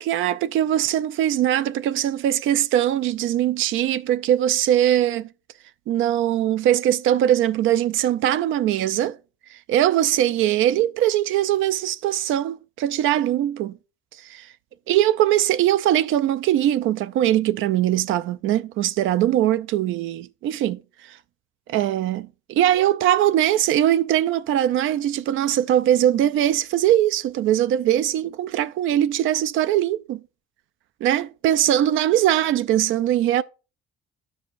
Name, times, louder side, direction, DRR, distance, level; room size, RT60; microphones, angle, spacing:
voice 1, 0.0-5.3 5.9-9.2 9.5-13.8 14.9-21.2 21.7-30.2 31.0-33.4, right 12 dB, 85° right, 0.4 m, -21 dB
13.5 x 4.8 x 2.5 m
cardioid pair, 90°, 20 cm